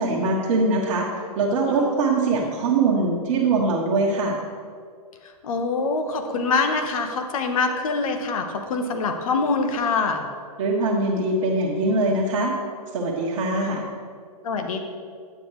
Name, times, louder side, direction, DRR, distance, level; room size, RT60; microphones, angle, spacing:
voice 1, 0.0-4.4 10.6-12.5 12.9-13.8, right 3 dB, 55° right, -4 dB, 1.2 m, -22 dB
voice 2, 5.4-10.2 13.6-13.8 14.4-14.8, left 4 dB, 60° left, 5 dB, 1.1 m, -24 dB
10.0 x 7.5 x 3.2 m, 2.1 s
hypercardioid pair, 120°, 20 cm